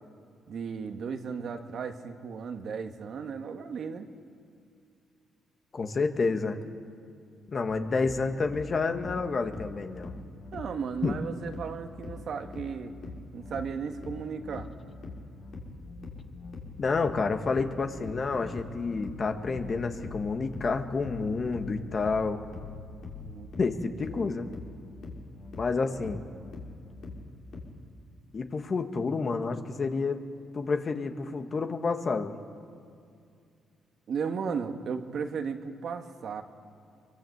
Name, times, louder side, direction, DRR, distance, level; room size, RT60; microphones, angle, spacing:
voice 1, 0.5-4.1 10.5-12.9 13.3-14.7 23.2-23.5 24.1-24.4 34.1-36.4, right 6 dB, 60° right, 6 dB, 1.6 m, -35 dB
voice 2, 5.7-6.6 7.5-10.1 11.0-11.2 16.8-22.5 23.6-24.5 25.6-26.2 28.3-30.2 30.5-32.3, left 4 dB, 40° left, 6 dB, 1.7 m, -29 dB
sound 1, 7.7-27.6, left 3 dB, 65° left, 3.9 m, -43 dB
23.0 x 23.0 x 8.0 m, 2.3 s
cardioid pair, 90°, 0 cm